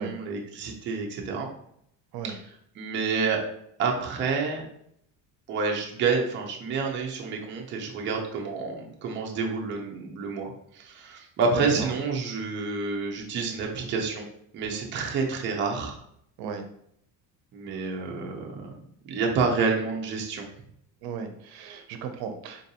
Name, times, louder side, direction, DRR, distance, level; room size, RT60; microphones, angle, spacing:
voice 1, 0.0-1.5 2.2-2.4 2.8-3.4 3.8-4.6 5.5-14.3 14.5-16.0 17.5-18.7 19.0-20.5, right 4 dB, 30° right, 0 dB, 0.5 m, -29 dB
voice 2, 21.0-22.6, right 6 dB, 75° right, 6 dB, 0.6 m, -35 dB
3.7 x 2.5 x 2.7 m, 0.72 s
cardioid pair, 170°, 37 cm